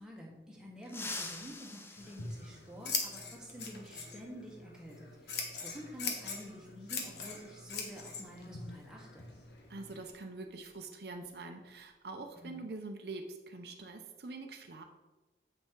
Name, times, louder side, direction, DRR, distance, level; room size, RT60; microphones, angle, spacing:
voice 1, 0.0-9.3 12.2-12.6, equal, 5° right, -3 dB, 1.3 m, -49 dB
sound 1, 0.8-3.3 4.9-5.0 6.2-6.3 8.0-8.1 8.5-8.7 9.2-11.3 11.6-11.9 12.3-12.7, left 2 dB, 15° left, 0.5 m, -46 dB
Scissors, 2.0-10.1, left 4 dB, 65° left, 1.2 m, -42 dB
voice 2, 9.7-14.8, right 3 dB, 60° right, 4 dB, 0.6 m, -45 dB
7.9 x 5.7 x 4.5 m, 1.1 s
head